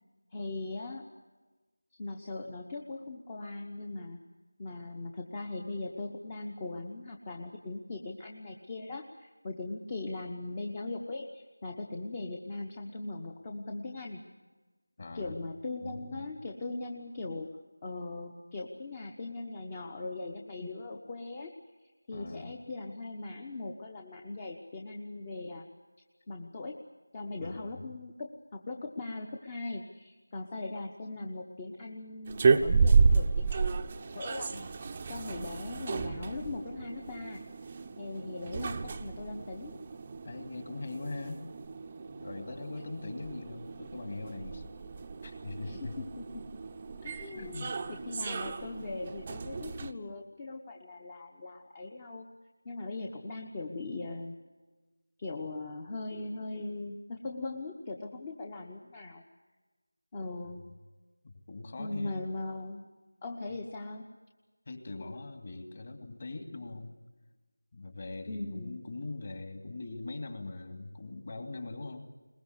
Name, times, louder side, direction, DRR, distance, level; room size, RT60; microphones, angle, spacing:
voice 1, 0.3-1.1 2.0-4.2 4.6-14.2 15.1-21.5 22.1-25.7 26.3-26.8 27.1-34.7 35.1-37.4 38.0-39.8 45.6-46.4 47.0-52.3 52.6-54.3 55.2-59.2 60.1-60.6 61.8-62.8 63.2-64.1 68.3-68.8, left 2 dB, 20° left, 3 dB, 1.0 m, -40 dB
voice 2, 15.0-15.3 15.8-16.3 22.1-22.6 27.4-27.8 40.2-41.5 42.1-44.7 45.2-46.0 47.4-47.8 60.4-60.6 61.2-62.2 64.7-67.0 67.7-72.1, left 2 dB, 35° left, 5 dB, 2.7 m, -41 dB
sound 1, 32.3-49.9, right 4 dB, 20° right, 0.8 m, -32 dB
22.0 x 20.5 x 8.2 m, 1.2 s
figure-of-eight pair, 170°, 0 cm